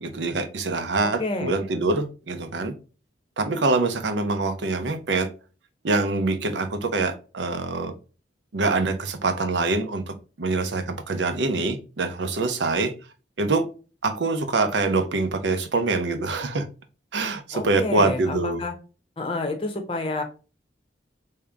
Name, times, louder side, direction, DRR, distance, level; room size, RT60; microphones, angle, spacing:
voice 1, 0.0-2.7 3.4-5.3 5.8-7.9 8.5-12.9 13.4-13.7 14.0-16.7 17.1-18.6, right 3 dB, 75° right, 0.7 m, -25 dB
voice 2, 1.0-1.5 17.5-18.7 19.2-20.2, left 2 dB, 30° left, 0.8 m, -29 dB
3.5 x 2.8 x 3.4 m
head